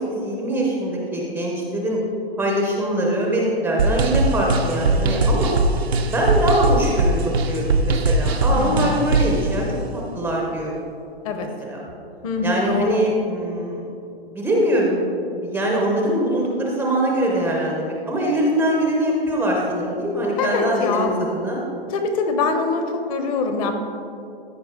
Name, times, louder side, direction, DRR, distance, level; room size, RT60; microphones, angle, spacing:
voice 1, 0.0-2.0 2.4-5.5 6.1-9.6 9.9-10.8 11.4-11.8 12.4-13.8 14.2-15.0 15.3-21.6, right 1 dB, 5° right, -2 dB, 0.6 m, -23 dB
sound 1, 3.8-9.4, right 2 dB, 80° right, 0.9 m, -20 dB
voice 2, 8.5-9.0 11.2-11.5 12.2-13.0 20.4-21.1 21.9-22.8 23.1-23.7, left 4 dB, 35° left, 6 dB, 1.0 m, -23 dB
14.0 x 5.0 x 3.7 m, 2.5 s
hypercardioid pair, 140°, 31 cm